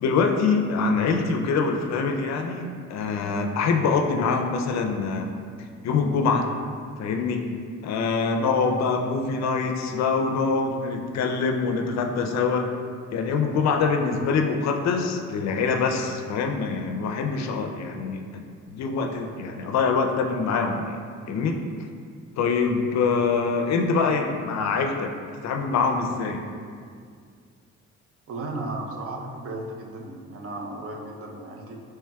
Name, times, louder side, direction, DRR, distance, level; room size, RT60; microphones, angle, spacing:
voice 1, 0.0-5.3 5.8-6.5 7.0-7.4 7.8-12.7 13.1-18.2 18.7-21.0 21.3-21.6 22.4-25.1 25.4-26.4, left 4 dB, 65° left, 3 dB, 0.4 m, -24 dB
voice 2, 28.3-31.8, right 2 dB, 50° right, 0 dB, 0.6 m, -35 dB
4.5 x 3.1 x 2.2 m, 2.1 s
cardioid pair, 90°, 30 cm